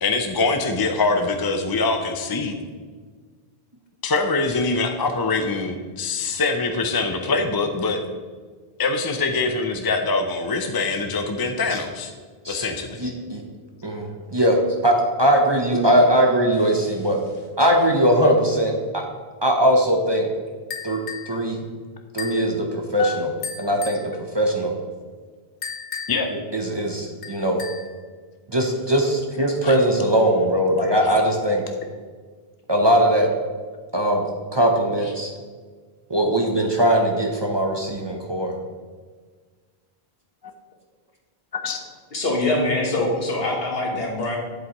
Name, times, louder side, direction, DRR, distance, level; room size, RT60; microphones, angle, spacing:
voice 1, 0.0-2.5 4.0-8.0 8.8-12.1 12.5-13.1 23.0-23.2 26.1-26.3 29.6-29.8 41.5-41.8, left 3 dB, 30° left, 4 dB, 0.4 m, -24 dB
voice 2, 13.0-13.4 13.8-14.6 14.8-17.2 17.6-19.0 19.4-20.3 20.8-21.0 21.3-21.6 22.1-22.7 22.9-23.3 23.6-24.0 24.3-24.7 26.3-27.6 28.5-31.6 32.7-33.3 33.9-34.2 34.5-35.3 36.1-38.5, equal, 30° right, 0 dB, 0.7 m, -20 dB
sound 1, 20.7-21.4 22.2-22.5 23.4-24.1 25.6-26.3 27.2-27.9, left 6 dB, 50° left, 0.8 m, -34 dB
voice 3, 42.1-44.4, left 2 dB, 70° left, 0 dB, 1.6 m, -24 dB
8.1 x 7.8 x 3.0 m, 1.5 s
omnidirectional pair, 1.1 m